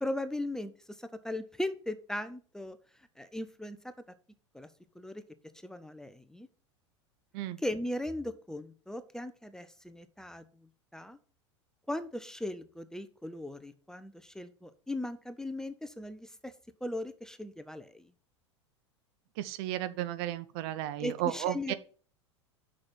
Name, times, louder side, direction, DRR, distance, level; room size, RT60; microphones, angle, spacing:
voice 1, 0.0-2.8 3.2-3.8 4.5-4.7 4.9-5.2 5.6-6.5 7.6-11.2 11.9-16.5 16.8-18.1 21.0-21.7, left 1 dB, 5° left, 11 dB, 0.7 m, -38 dB
voice 2, 19.4-21.7, right 13 dB, 55° right, 14 dB, 0.8 m, -34 dB
6.3 x 6.1 x 7.2 m, 0.41 s
figure-of-eight pair, 85°, 15 cm